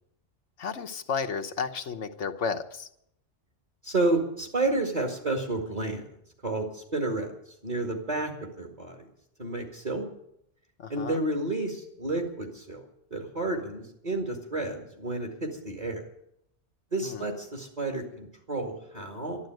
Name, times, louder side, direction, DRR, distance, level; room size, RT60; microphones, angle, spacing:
voice 1, 0.6-2.9 10.8-11.2 17.0-17.3, left 5 dB, 90° left, 6 dB, 1.4 m, -32 dB
voice 2, 3.8-6.0 6.4-7.3 7.6-9.1 9.4-10.1 10.9-12.8 13.1-16.0 16.9-19.5, right 2 dB, 35° right, 1 dB, 2.3 m, -30 dB
13.0 x 11.5 x 9.2 m, 0.76 s
omnidirectional pair, 1.2 m